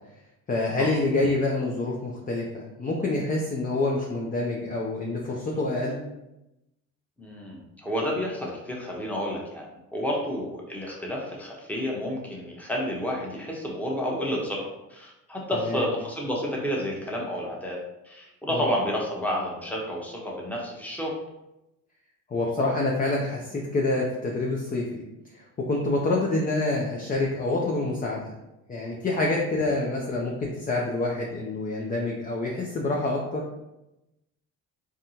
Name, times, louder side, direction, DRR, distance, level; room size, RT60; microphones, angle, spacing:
voice 1, 0.5-6.0 15.5-15.8 18.5-18.6 22.3-25.0 25.3-28.3 28.7-33.5, left 2 dB, 20° left, -2 dB, 0.5 m, -27 dB
voice 2, 7.2-9.7 9.9-17.8 18.0-21.2 29.1-29.2, equal, 5° left, -3 dB, 1.0 m, -30 dB
3.5 x 2.2 x 2.8 m, 0.91 s
supercardioid pair, 70°, 41 cm